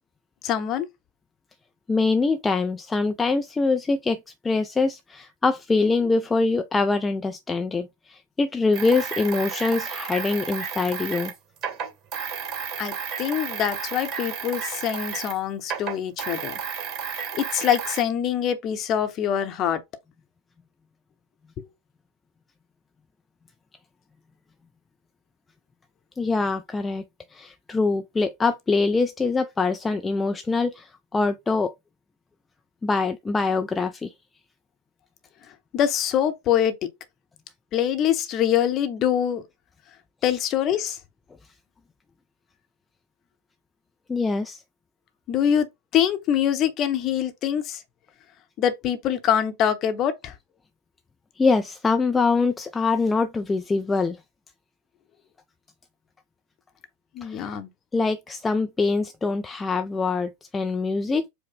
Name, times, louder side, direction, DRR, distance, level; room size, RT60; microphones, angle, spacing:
voice 1, 0.4-0.9 12.8-16.6 17.3-19.8 21.6-21.7 35.7-36.8 37.7-39.4 40.2-41.0 45.3-45.7 45.9-47.8 48.6-50.3 57.1-57.7, left 9 dB, 35° left, 0.8 m, -24 dB
voice 2, 1.9-4.2 4.4-11.3 26.2-27.0 27.3-31.7 32.8-34.1 44.1-44.6 51.4-54.2 57.2-57.6 57.9-61.3, left 3 dB, 15° left, 0.3 m, -24 dB
sound 1, 8.7-15.4 15.6-18.0, right 6 dB, 40° right, 2.5 m, -32 dB
4.9 x 2.1 x 4.3 m
figure-of-eight pair, 90°, 0 cm